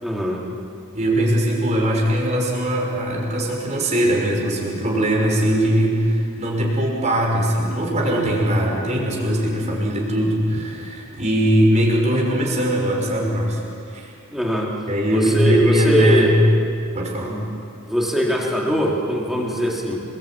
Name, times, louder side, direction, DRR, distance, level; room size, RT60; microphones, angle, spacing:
voice 1, 0.0-0.5 14.3-14.7 15.1-16.3 17.3-17.4 17.9-20.0, equal, ahead, -3 dB, 3.8 m, -21 dB
voice 2, 0.9-13.6 13.9-14.1 14.9-16.3 16.9-17.3, right 1 dB, 30° right, -1 dB, 6.0 m, -20 dB
30.0 x 22.0 x 8.8 m, 2.5 s
head